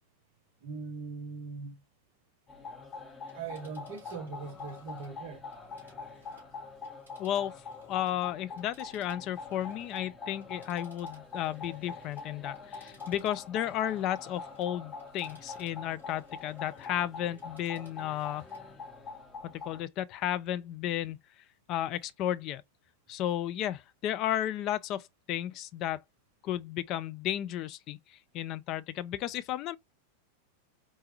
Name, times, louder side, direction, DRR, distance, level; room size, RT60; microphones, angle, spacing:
voice 1, 0.6-1.8 3.3-5.5, right 5 dB, 50° right, 0.7 m, -41 dB
sound 1, 2.5-19.8, left 4 dB, 15° left, 0.9 m, -44 dB
Telephone, 3.3-8.2 8.5-17.0 17.3-18.7 19.1-19.2, right 1 dB, 90° left, 1.9 m, -64 dB
voice 2, 7.2-7.5 7.8-18.5 19.7-21.2 21.7-22.6 23.1-26.0 26.4-29.8, left 12 dB, 35° left, 0.3 m, -33 dB
4.2 x 2.2 x 2.8 m
figure-of-eight pair, 90°, 0 cm